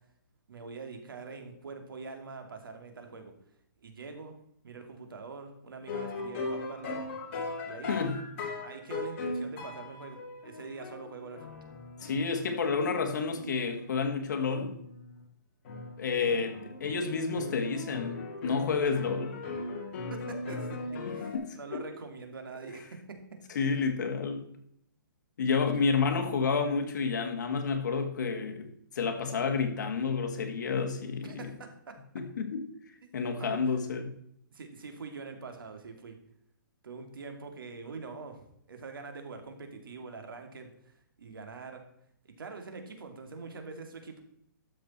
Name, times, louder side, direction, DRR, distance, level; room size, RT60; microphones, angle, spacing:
voice 1, 0.5-3.3 3.8-4.4 4.6-7.1 7.6-8.1 8.6-11.5 20.1-23.8 25.8-25.9 31.2-32.0 33.4-33.9 34.5-36.2 36.8-41.8 42.4-44.2, right 4 dB, 90° right, 2.4 m, -44 dB
sound 1, 5.9-15.2 15.6-15.9 16.3-21.4, left 3 dB, 35° left, 2.5 m, -39 dB
voice 2, 7.9-8.2 12.0-14.8 16.0-19.4 21.1-21.8 23.5-24.4 25.4-28.7 29.0-31.5 32.1-32.6 33.1-34.1, left 5 dB, 55° left, 1.8 m, -30 dB
12.5 x 6.8 x 4.3 m
hypercardioid pair, 170°, 11 cm